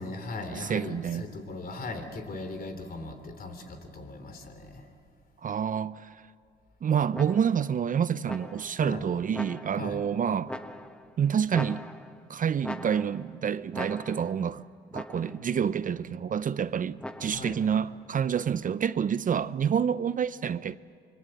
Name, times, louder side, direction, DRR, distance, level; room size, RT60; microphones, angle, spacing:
voice 1, 0.0-4.9 8.8-9.0 9.7-10.0 17.3-17.6, left 2 dB, 45° left, 3.4 m, -38 dB
voice 2, 0.5-1.3 5.4-6.1 6.8-10.5 11.2-11.8 12.3-14.6 14.9-20.8, right 8 dB, 40° right, 0.6 m, -28 dB
sound 1, 7.1-7.7 8.3-8.8 9.3-10.0 10.5-11.1 11.5-12.3 12.6-13.3 13.7-14.4 14.9-15.5 17.0-17.6, left 1 dB, 5° left, 1.1 m, -41 dB
25.5 x 24.0 x 7.9 m
cardioid pair, 90°, 20 cm